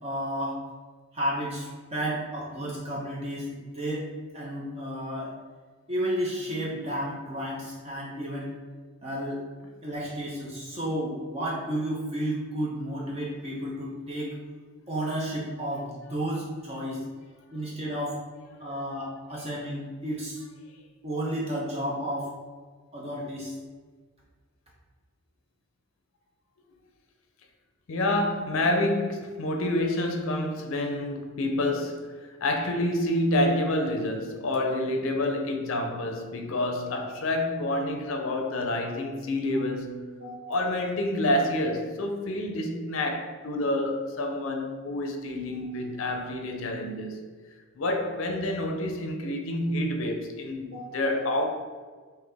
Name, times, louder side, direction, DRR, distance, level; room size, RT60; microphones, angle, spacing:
voice 1, 0.0-0.6 1.1-4.1 4.3-5.3 5.9-8.5 9.0-9.4 9.8-14.4 14.9-17.0 17.5-18.2 18.6-20.4 21.0-22.3 22.9-23.6 40.2-40.6 50.7-51.0, right 1 dB, 30° right, -5 dB, 0.6 m, -32 dB
voice 2, 27.9-32.1 32.4-40.1 40.5-47.2 47.8-51.4, left 1 dB, 65° left, 3 dB, 0.5 m, -28 dB
4.0 x 2.7 x 3.4 m, 1.5 s
head